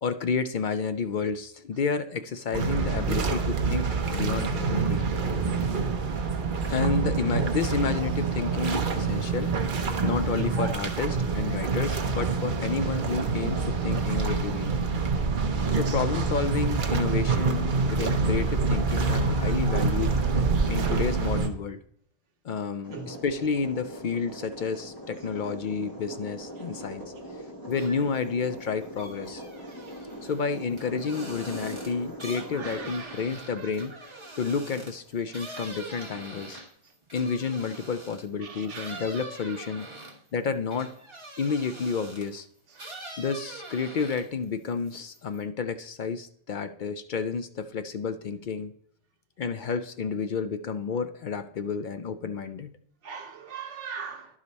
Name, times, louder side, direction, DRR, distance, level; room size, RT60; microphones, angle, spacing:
voice 1, 0.0-5.0 6.7-9.5 10.0-14.7 15.7-20.2 20.7-21.8 22.4-27.0 27.7-29.4 30.2-33.9 34.4-36.6 37.1-39.9 40.3-40.9 41.4-42.5 43.2-48.7 49.4-52.7, left 5 dB, 60° left, 0.5 m, -30 dB
sound 1, 2.5-21.5, right 4 dB, 50° right, 0.9 m, -26 dB
voice 2, 10.3-10.6 15.6-15.9 22.9-23.1 32.5-33.2 38.4-39.0 53.0-54.3, right 5 dB, 80° right, 1.3 m, -38 dB
sound 2, 22.8-36.7, equal, 15° left, 2.0 m, -42 dB
sound 3, 27.7-28.2 28.6-38.3 38.7-42.4 42.7-44.4 44.8-45.4, right 2 dB, 25° right, 1.4 m, -44 dB
11.0 x 5.0 x 4.0 m
omnidirectional pair, 1.2 m